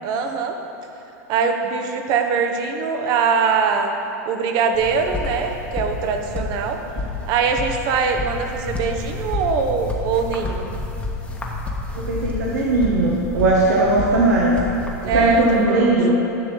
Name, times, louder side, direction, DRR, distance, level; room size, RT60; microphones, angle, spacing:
voice 1, 0.0-0.6 1.3-3.9 4.3-6.8 7.3-10.6 15.0-16.0, right 5 dB, 50° right, 5 dB, 0.9 m, -22 dB
sound 1, 4.7-15.7, left 2 dB, 15° left, 1.1 m, -30 dB
voice 2, 11.9-14.5 15.0-16.1, right 2 dB, 80° right, -4 dB, 1.2 m, -18 dB
11.0 x 6.1 x 3.8 m, 3.0 s
hypercardioid pair, 110°, 9 cm